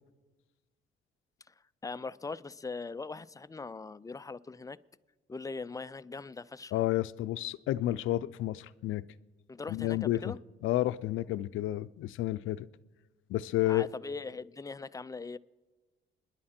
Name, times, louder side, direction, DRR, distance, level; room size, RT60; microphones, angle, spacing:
voice 1, 1.8-4.8 5.3-6.7 9.5-10.4 13.7-15.4, left 4 dB, 15° left, 0.4 m, -40 dB
voice 2, 6.7-9.0 9.7-10.3 10.6-12.7 13.3-13.9, left 15 dB, 85° left, 0.5 m, -30 dB
27.0 x 10.5 x 4.3 m
cardioid pair, 90°, 20 cm